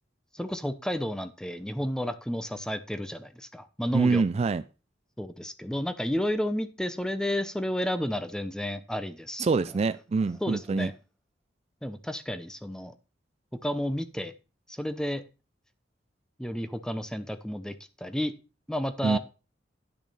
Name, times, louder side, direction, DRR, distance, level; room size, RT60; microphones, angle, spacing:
voice 1, 0.3-4.2 5.2-9.5 10.4-10.9 11.8-12.9 13.6-14.3 14.7-15.2 16.4-18.3 18.7-19.2, equal, 5° left, 11 dB, 0.6 m, -31 dB
voice 2, 3.9-4.6 9.4-10.9 19.0-19.2, right 4 dB, 35° right, 13 dB, 0.3 m, -25 dB
10.5 x 6.2 x 4.1 m, 0.32 s
head